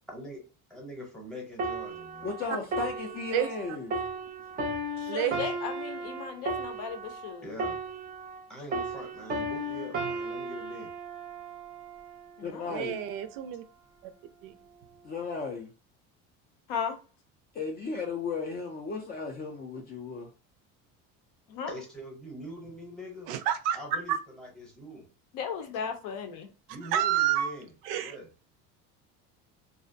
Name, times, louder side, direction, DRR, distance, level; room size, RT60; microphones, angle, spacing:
voice 1, 0.1-0.4 0.7-2.3 7.4-7.8 8.5-10.9 21.7-23.3 23.7-25.1 26.7-28.3, equal, ahead, 0.8 m, -43 dB
sound 1, 1.6-8.4 8.7-12.3 12.9-13.1, right 2 dB, 25° right, 0.5 m, -35 dB
voice 2, 2.2-3.9 12.4-13.0 15.0-15.7 17.5-20.3, left 4 dB, 30° left, 0.4 m, -35 dB
voice 3, 5.0-7.6 12.4-12.9 16.7-17.0 21.5-21.7 25.3-26.5, left 6 dB, 70° left, 0.6 m, -36 dB
voice 4, 12.7-13.6 14.4-14.5 23.3-23.8 24.1-24.2 26.9-27.5 27.8-28.2, right 11 dB, 75° right, 0.5 m, -28 dB
2.4 x 2.0 x 2.5 m
cardioid pair, 140°, 33 cm